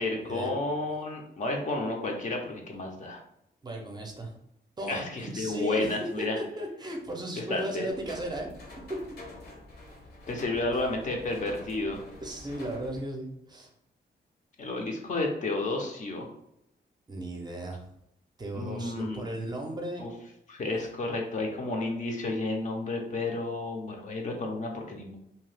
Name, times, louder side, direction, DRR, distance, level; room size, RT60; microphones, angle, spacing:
voice 1, 0.0-3.2 4.9-6.4 7.4-7.9 10.3-12.0 14.6-16.3 18.5-19.2 20.0-20.1 20.5-25.2, left 2 dB, 45° left, 1 dB, 0.5 m, -31 dB
voice 2, 3.6-4.3 4.8-8.5 10.7-10.8 12.2-13.7 17.1-17.8 18.4-20.0, right 1 dB, 25° right, 1 dB, 0.5 m, -36 dB
sound 1, 7.9-13.0, left 2 dB, 65° left, 0.9 m, -47 dB
2.7 x 2.2 x 3.2 m, 0.78 s
wide cardioid pair, 130°, 18 cm